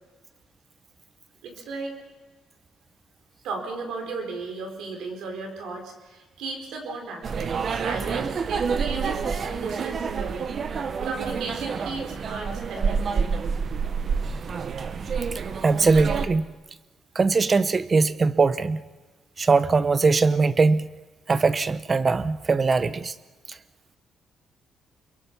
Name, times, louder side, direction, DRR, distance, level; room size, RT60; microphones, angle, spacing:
voice 1, 1.4-2.0 3.4-13.3, right 3 dB, 85° right, 3 dB, 4.7 m, -35 dB
sound 1, 7.2-16.3, right 5 dB, 50° right, 1.2 m, -28 dB
voice 2, 15.6-16.5 17.1-18.8 19.4-20.9 21.3-23.1, right 4 dB, 35° right, 14 dB, 0.9 m, -21 dB
29.5 x 22.5 x 5.6 m, 1.2 s
cardioid pair, 90°, 0 cm